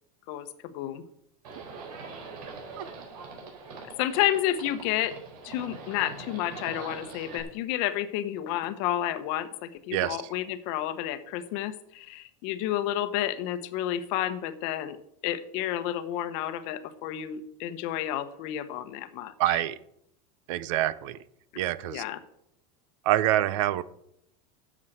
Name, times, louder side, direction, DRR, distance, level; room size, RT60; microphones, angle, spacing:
Livestock farm animals working animals, 1.4-7.4, right 4 dB, 75° right, 4.3 m, -43 dB
voice 1, 4.0-5.1 5.4-15.0 15.2-19.3 21.8-22.2, left 12 dB, 45° left, 11 dB, 1.0 m, -30 dB
voice 2, 9.9-10.2 19.4-19.8 20.5-21.2 21.6-22.0 23.0-23.8, right 14 dB, 50° right, 18 dB, 0.6 m, -26 dB
9.9 x 7.3 x 7.9 m, 0.77 s
supercardioid pair, 175°, 20 cm